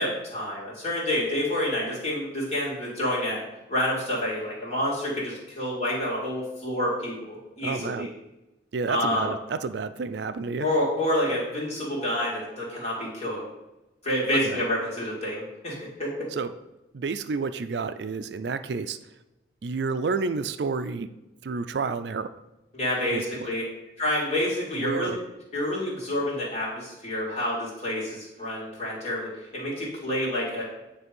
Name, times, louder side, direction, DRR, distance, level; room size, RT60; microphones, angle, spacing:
voice 1, 0.0-3.4 3.7-8.1 8.9-9.3 10.6-13.4 14.0-16.1 22.7-23.6 24.0-25.2 25.5-30.6, left 1 dB, 35° left, -5 dB, 2.7 m, -28 dB
voice 2, 7.6-8.1 8.7-10.7 14.4-14.6 16.3-16.5 16.9-19.0 19.6-21.1 21.4-22.3 23.1-23.3 24.7-25.2, right 4 dB, 70° right, 11 dB, 0.4 m, -30 dB
9.5 x 3.4 x 5.3 m, 1.0 s
head